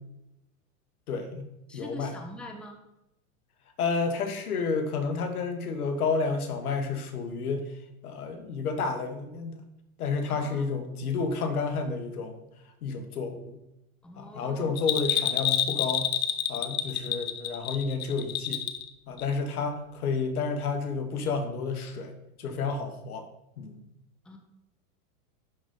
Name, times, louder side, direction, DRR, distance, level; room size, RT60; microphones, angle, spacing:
voice 1, 1.1-2.1 3.8-7.7 8.0-9.6 10.0-12.5 12.8-13.6 14.1-16.1 16.5-18.6 19.1-23.3 23.6-23.9, left 4 dB, 90° left, 7 dB, 1.3 m, -30 dB
voice 2, 1.7-2.8 10.3-10.7 14.0-14.7 24.2-24.4, equal, ahead, 3 dB, 0.6 m, -43 dB
Bell, 14.8-18.9 19.2-19.3, left 11 dB, 70° left, 0.8 m, -28 dB
11.0 x 3.9 x 3.7 m, 0.89 s
hypercardioid pair, 125°, 43 cm